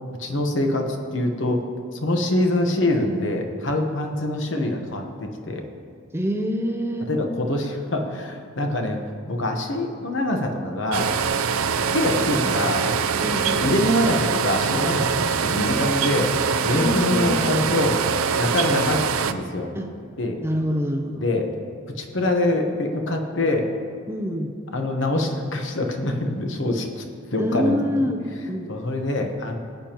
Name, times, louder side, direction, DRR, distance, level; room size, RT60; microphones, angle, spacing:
voice 1, 0.2-1.6 1.9-5.6 7.1-9.0 9.3-11.1 11.9-12.9 13.6-19.0 19.3-19.7 20.2-20.4 21.2-21.5 22.0-23.7 24.7-27.0 27.3-28.1 28.7-29.6, left 1 dB, 60° left, 3 dB, 1.1 m, -24 dB
voice 2, 6.1-7.1 13.2-13.9 16.7-17.4 19.7-19.9 20.4-21.2 24.1-24.5 27.4-28.7, equal, 10° right, 3 dB, 0.6 m, -26 dB
Computer Room Ambience Beep Small Room Noisy, 10.9-19.3, right 6 dB, 80° right, 0.5 m, -23 dB
19.5 x 8.7 x 3.0 m, 2.3 s
head